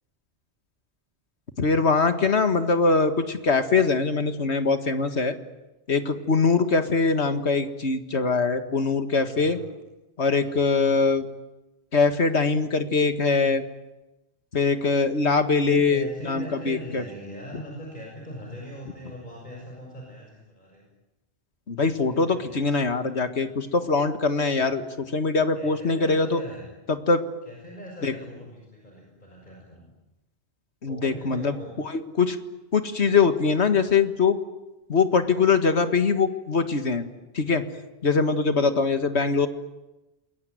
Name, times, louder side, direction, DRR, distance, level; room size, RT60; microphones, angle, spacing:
voice 1, 1.6-5.4 5.9-9.6 10.2-11.3 11.9-13.6 14.5-17.0 21.7-26.4 26.9-27.2 28.0-28.1 30.8-31.5 31.9-32.4 32.7-34.4 34.9-37.0 37.3-37.6 38.0-39.5, left 4 dB, 80° left, 8 dB, 2.1 m, -22 dB
voice 2, 10.3-10.6 15.6-20.9 21.9-22.6 25.5-26.7 27.4-29.9 30.9-31.7, equal, 45° left, -1 dB, 6.5 m, -41 dB
28.5 x 22.5 x 9.3 m, 1.0 s
omnidirectional pair, 1.1 m